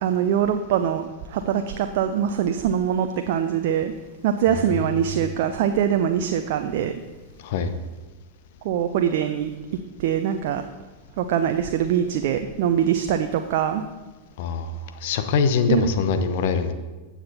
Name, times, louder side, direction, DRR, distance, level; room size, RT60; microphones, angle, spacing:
voice 1, 0.0-3.9 4.2-6.9 8.6-9.5 10.0-10.6 11.2-13.8 15.7-15.9, right 9 dB, 50° right, 7 dB, 0.6 m, -23 dB
voice 2, 4.5-5.3 7.4-7.7 14.4-16.7, left 5 dB, 50° left, 9 dB, 0.9 m, -24 dB
15.5 x 7.4 x 4.1 m, 1.2 s
figure-of-eight pair, 90°, 0 cm